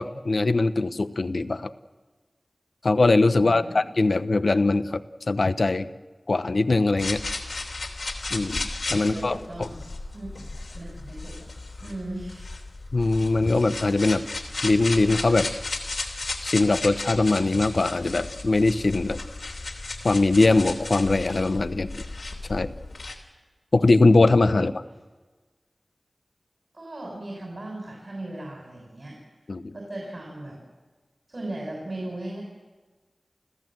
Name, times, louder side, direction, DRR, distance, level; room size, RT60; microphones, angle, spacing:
voice 1, 0.0-1.7 2.8-5.9 6.3-7.2 8.3-9.7 12.9-14.2 14.6-15.5 16.4-19.2 20.0-22.0 22.5-22.7 23.7-24.8 29.5-29.7, left 3 dB, 65° left, 11 dB, 1.0 m, -21 dB
voice 2, 3.4-3.8 9.0-10.3 10.7-11.5 11.8-12.5 26.7-29.2 29.7-30.6 31.3-32.4, right 1 dB, 55° right, -2 dB, 6.6 m, -37 dB
sound 1, 7.0-23.2, left 3 dB, 80° left, 3.0 m, -34 dB
30.0 x 14.5 x 7.7 m, 1.3 s
wide cardioid pair, 60°, 0 cm